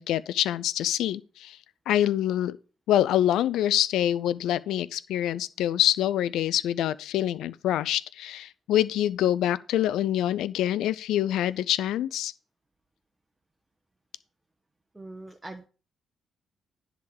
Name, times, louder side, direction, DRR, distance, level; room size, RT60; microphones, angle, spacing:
voice 1, 0.0-1.6 1.9-2.6 2.9-12.3, left 12 dB, 75° left, 0.4 m, -25 dB
voice 2, 14.9-15.6, right 2 dB, 20° right, 1.2 m, -42 dB
10.5 x 3.7 x 7.0 m
hypercardioid pair, 50°, 0 cm